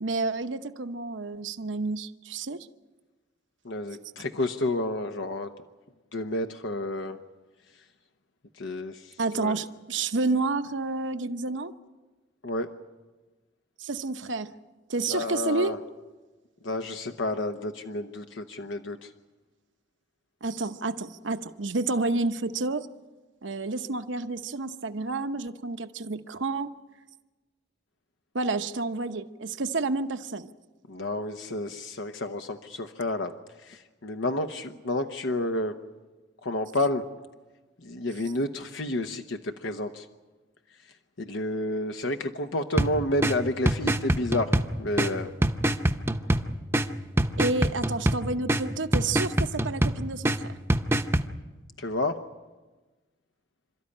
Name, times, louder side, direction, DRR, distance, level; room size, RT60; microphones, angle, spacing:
voice 1, 0.0-2.6 9.2-11.7 13.8-14.5 14.9-15.8 20.4-22.9 23.4-26.7 28.3-30.5 47.4-50.6, right 3 dB, 80° right, 10 dB, 0.9 m, -30 dB
voice 2, 3.6-5.5 6.1-7.2 8.6-9.6 12.4-12.7 15.1-15.8 16.6-19.1 30.9-33.3 33.6-35.7 36.4-37.0 37.8-40.1 41.2-45.3 51.8-52.2, left 1 dB, 80° left, 6 dB, 0.9 m, -30 dB
sound 1, 42.8-51.3, right 1 dB, 10° right, 0.7 m, -26 dB
28.0 x 13.0 x 9.9 m, 1.2 s
head